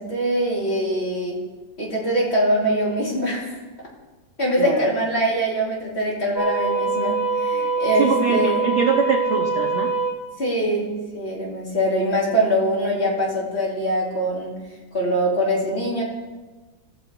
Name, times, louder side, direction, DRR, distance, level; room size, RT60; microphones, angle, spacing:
voice 1, 0.0-1.4 1.8-3.6 4.4-8.6 10.4-14.5 14.9-16.0, right 1 dB, 35° left, -5 dB, 2.8 m, -23 dB
sound 1, 6.4-10.2, right 3 dB, 25° right, 1.8 m, -23 dB
voice 2, 8.0-9.9, right 6 dB, 55° right, 2 dB, 0.8 m, -23 dB
17.0 x 6.8 x 3.8 m, 1.2 s
omnidirectional pair, 2.1 m